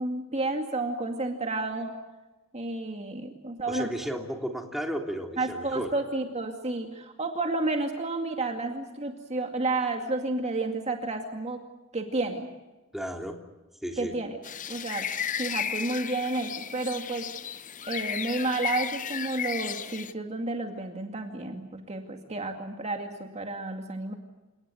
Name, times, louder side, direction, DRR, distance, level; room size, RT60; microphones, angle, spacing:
voice 1, 0.0-1.9 2.5-3.9 5.4-11.6 11.9-12.5 14.0-14.4 14.7-15.1 15.4-17.3 17.9-24.1, right 2 dB, 35° right, 4 dB, 2.3 m, -31 dB
voice 2, 3.7-6.0 12.9-13.4 13.8-14.1, equal, ahead, 2 dB, 3.3 m, -33 dB
sound 1, 14.4-20.1, left 8 dB, 40° left, 0.9 m, -34 dB
29.5 x 18.5 x 7.9 m, 1.1 s
head